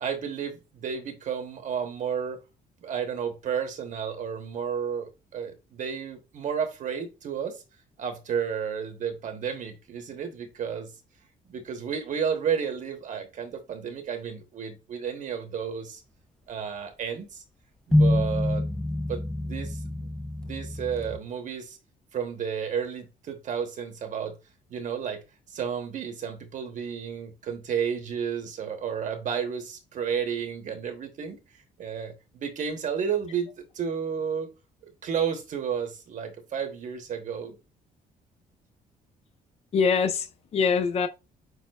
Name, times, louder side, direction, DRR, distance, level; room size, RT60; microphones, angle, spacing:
voice 1, 0.0-2.4 2.8-7.6 8.0-10.9 11.5-16.0 16.5-17.4 17.9-18.7 19.0-20.1 20.5-21.8 22.1-24.4 24.7-25.2 25.5-31.4 31.8-34.5 35.0-37.6, right 7 dB, 55° right, 1.0 m, -32 dB
sound 1, 17.9-21.2, left 1 dB, 5° left, 0.4 m, -26 dB
voice 2, 39.7-41.1, left 5 dB, 40° left, 0.6 m, -24 dB
6.5 x 3.5 x 2.3 m
cardioid pair, 125°, 16 cm